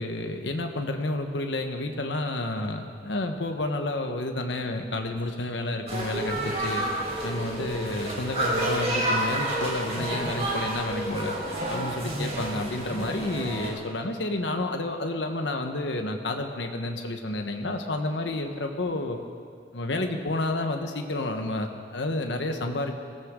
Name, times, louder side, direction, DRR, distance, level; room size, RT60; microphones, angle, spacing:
voice 1, 0.0-6.9 7.2-11.4 11.7-19.2 19.7-22.9, left 2 dB, 90° left, 4 dB, 1.3 m, -30 dB
sound 1, 5.9-13.7, right 1 dB, 35° right, 4.2 m, -30 dB
22.5 x 16.5 x 3.8 m, 2.1 s
head